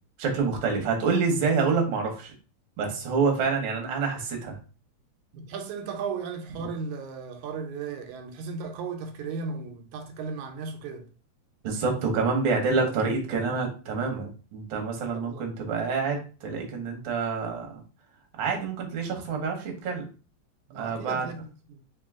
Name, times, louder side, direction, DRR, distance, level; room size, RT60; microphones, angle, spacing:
voice 1, 0.2-2.3 2.8-4.6 11.6-17.8 18.4-20.0 20.7-21.3, right 4 dB, 60° right, 1.3 m, -27 dB
voice 2, 5.3-11.1 15.1-15.6 20.7-21.8, right 5 dB, 85° right, 2.1 m, -36 dB
4.4 x 2.7 x 3.5 m
omnidirectional pair, 3.3 m